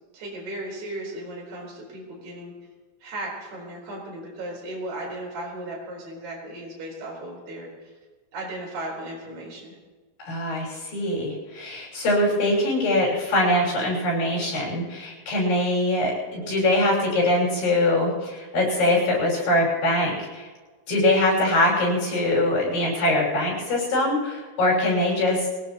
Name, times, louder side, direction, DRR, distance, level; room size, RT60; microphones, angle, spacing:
voice 1, 0.1-2.5 3.0-7.9 8.3-9.8, right 1 dB, 70° right, -3 dB, 6.4 m, -36 dB
voice 2, 10.3-20.5 20.9-25.5, left 1 dB, 90° left, -3 dB, 7.7 m, -23 dB
23.0 x 18.0 x 3.1 m, 1.3 s
omnidirectional pair, 4.6 m